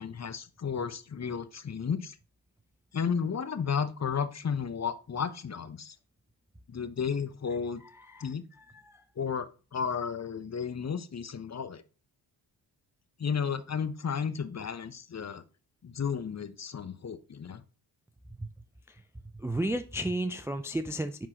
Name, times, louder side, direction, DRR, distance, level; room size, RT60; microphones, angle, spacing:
voice 1, 0.0-2.2 2.9-6.0 6.7-7.8 8.2-8.4 9.2-11.8 13.2-15.4 15.8-17.6, left 6 dB, 35° left, 12 dB, 0.8 m, -33 dB
voice 2, 19.3-21.3, right 1 dB, 5° right, 10 dB, 0.4 m, -33 dB
9.8 x 3.7 x 2.9 m, 0.35 s
supercardioid pair, 45°, 48 cm